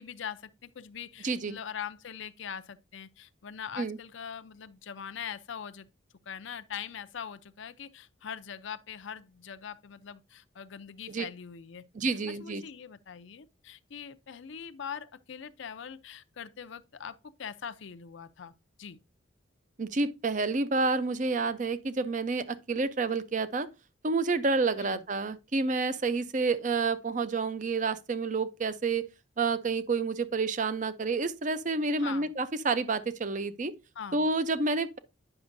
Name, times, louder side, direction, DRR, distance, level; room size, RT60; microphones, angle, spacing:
voice 1, 0.0-5.9 6.3-11.8 12.4-18.5 18.8-19.0 24.8-25.1 32.0-32.3 34.0-34.3, left 7 dB, 70° left, 0.5 m, -42 dB
voice 2, 1.2-1.6 3.8-4.0 11.1-11.2 11.9-12.6 19.8-23.7 24.0-29.0 29.4-33.7 34.1-35.0, right 3 dB, 40° right, 0.5 m, -29 dB
9.8 x 6.0 x 2.6 m
head